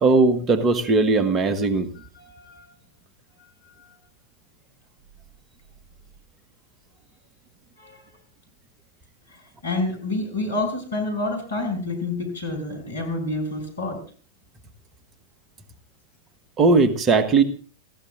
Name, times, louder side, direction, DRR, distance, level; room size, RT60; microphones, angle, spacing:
voice 1, 0.0-1.9 16.6-17.4, right 3 dB, 25° right, 11 dB, 1.6 m, -18 dB
voice 2, 2.0-2.7 3.8-3.9 7.8-8.2 9.3-14.0, left 2 dB, 70° left, 2 dB, 7.4 m, -29 dB
29.5 x 15.5 x 2.6 m, 0.40 s
figure-of-eight pair, 90°, 0 cm